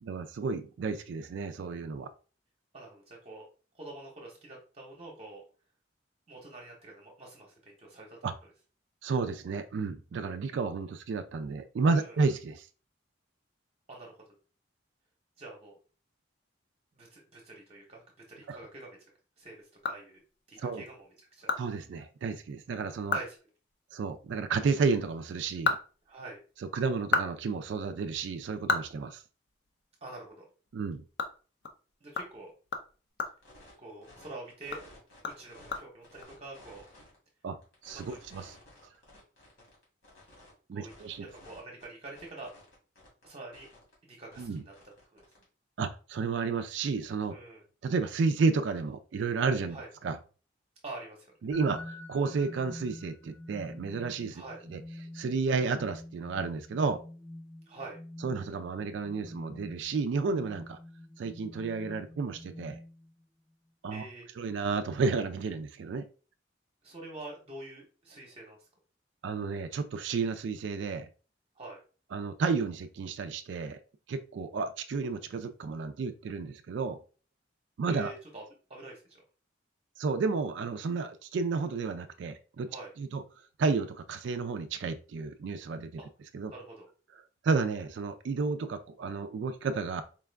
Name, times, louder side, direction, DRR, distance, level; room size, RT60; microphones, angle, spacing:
voice 1, 0.0-2.1 8.2-8.3 9.0-12.7 18.5-18.6 20.6-20.8 21.6-23.2 23.9-25.8 26.7-29.2 30.7-31.0 37.4-37.6 37.8-38.5 40.7-41.3 44.4-44.6 45.8-47.4 47.8-49.8 50.0-50.2 51.4-54.4 54.7-54.8 55.1-57.0 58.2-60.8 61.2-62.8 63.8-64.1 64.4-66.1 69.2-71.1 72.1-73.8 74.1-77.0 77.8-78.1 80.0-82.7 83.0-83.2 83.6-85.9 86.3-86.5 87.4-90.0, right 4 dB, 65° right, 0.3 m, -31 dB
voice 2, 2.7-3.5 3.7-5.4 6.3-8.5 11.9-12.2 13.9-14.2 15.4-15.7 16.9-19.0 19.4-19.5 19.8-20.2 20.5-21.0 21.3-21.6 23.1-23.3 26.1-26.4 30.0-30.4 32.0-32.5 33.8-34.8 35.3-36.8 37.9-38.2 40.7-40.9 41.4-42.5 43.2-43.7 44.0-44.7 45.1-45.2 47.3-47.6 49.7-49.9 50.8-51.3 54.3-54.6 57.7-58.0 63.9-64.3 66.8-68.6 71.6-71.8 77.9-78.4 78.7-79.2 82.7-82.9 86.0-86.1 86.5-86.9, right 2 dB, 30° right, 0.8 m, -46 dB
sound 1, 19.4-20.6 21.0-21.1 21.5-21.6 22.0-22.1 22.5-22.6 23.0-23.4 23.6-23.8 25.3-26.5 26.9-29.8 30.1-30.3 30.7-34.2 34.6-36.2, left 3 dB, 55° left, 0.5 m, -34 dB
sound 2, 33.4-33.7 34.0-35.8 36.0-37.2 37.6-40.5 40.9-43.3 43.5-43.9 44.3-45.4, left 1 dB, 85° left, 2.0 m, -54 dB
sound 3, 51.5-63.2, left 1 dB, 10° left, 0.5 m, -47 dB
4.5 x 2.3 x 3.3 m
head